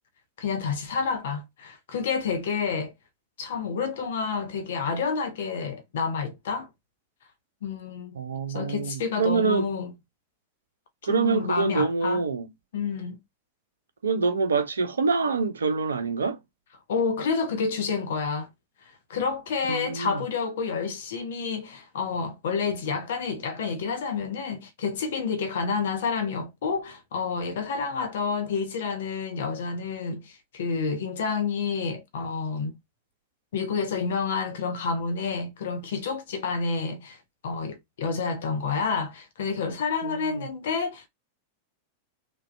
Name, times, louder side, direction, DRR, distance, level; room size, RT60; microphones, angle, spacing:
voice 1, 0.4-2.9 3.4-6.7 7.6-8.2 8.5-9.9 11.0-12.2 12.7-13.2 16.9-18.5 19.1-32.7 33.5-41.1, left 5 dB, 60° left, 0.7 m, -29 dB
voice 2, 8.2-9.7 11.0-12.5 14.0-16.4 19.7-20.2 40.0-40.5, right 4 dB, 70° right, 0.5 m, -26 dB
3.3 x 2.2 x 2.4 m
figure-of-eight pair, 90°, 0 cm